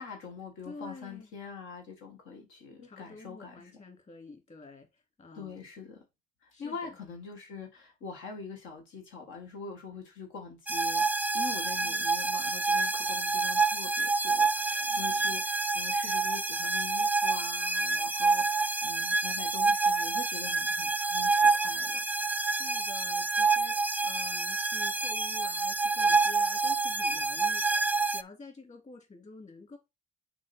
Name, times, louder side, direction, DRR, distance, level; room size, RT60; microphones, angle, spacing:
voice 1, 0.0-3.7 5.3-6.0 6.4-11.0 11.3-22.0, left 5 dB, 85° left, 1.8 m, -44 dB
voice 2, 0.6-1.3 2.8-5.7 6.5-7.0 11.8-12.1 14.9-15.4 22.3-27.8 28.1-29.8, left 3 dB, 35° left, 2.8 m, -49 dB
sound 1, 10.7-28.2, right 3 dB, 10° right, 0.3 m, -28 dB
6.2 x 4.7 x 4.3 m
cardioid pair, 90°, 20 cm